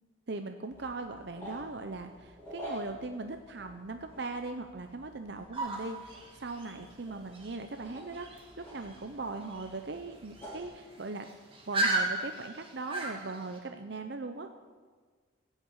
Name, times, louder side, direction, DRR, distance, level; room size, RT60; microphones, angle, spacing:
voice 1, 0.3-11.3 11.7-14.5, right 3 dB, 60° right, 6 dB, 0.7 m, -39 dB
sound 1, 0.7-10.7, equal, 10° left, 4.5 m, -49 dB
sound 2, 5.5-13.6, right 2 dB, 25° right, 2.1 m, -36 dB
16.0 x 6.5 x 8.7 m, 1.5 s
head